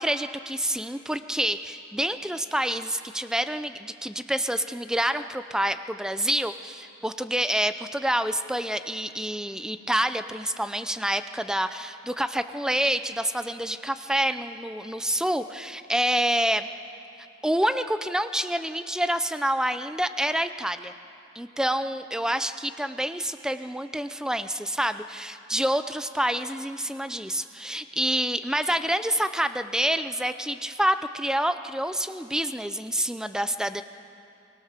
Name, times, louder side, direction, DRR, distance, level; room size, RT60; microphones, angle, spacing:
voice 1, 0.0-16.7 17.4-20.9 21.4-33.8, right 1 dB, 5° right, 10 dB, 0.6 m, -27 dB
23.5 x 20.5 x 6.7 m, 2.8 s
head